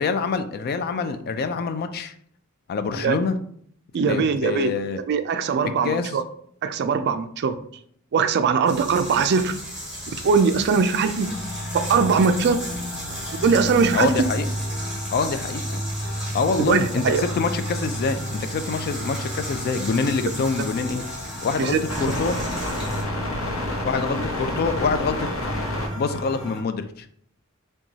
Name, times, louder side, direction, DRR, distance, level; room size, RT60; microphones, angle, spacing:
voice 1, 0.0-2.1 2.7-3.4 4.1-5.0 5.8-6.1 13.9-14.5 15.1-15.6 16.3-21.0 21.4-22.4 23.8-25.3 25.9-27.1, left 4 dB, 45° left, 10 dB, 0.3 m, -25 dB
voice 2, 3.9-4.7 5.0-6.2 6.6-7.6 8.1-9.6 10.2-11.3 11.7-12.6 13.4-14.1 16.6-17.2 20.6-20.7 21.6-22.1, right 5 dB, 50° right, 9 dB, 0.3 m, -21 dB
sound 1, 8.7-23.0, equal, 5° right, 1.6 m, -36 dB
sound 2, 11.2-26.6, equal, 70° left, 0.7 m, -31 dB
5.7 x 2.3 x 2.7 m, 0.63 s
head